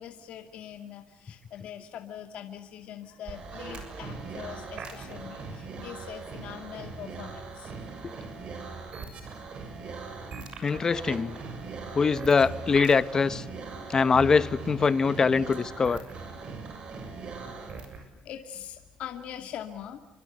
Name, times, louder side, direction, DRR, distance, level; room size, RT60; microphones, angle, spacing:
voice 1, 0.0-7.7 9.8-10.2 13.7-13.9 17.0-17.6 18.2-20.0, left 9 dB, 70° left, 2.3 m, -43 dB
sound 1, 3.3-18.0, right 4 dB, 50° right, 7.1 m, -40 dB
voice 2, 10.6-11.4 11.9-13.4 13.9-16.0, left 5 dB, 30° left, 1.0 m, -23 dB
29.0 x 24.5 x 8.0 m
cardioid pair, 140°, 2 cm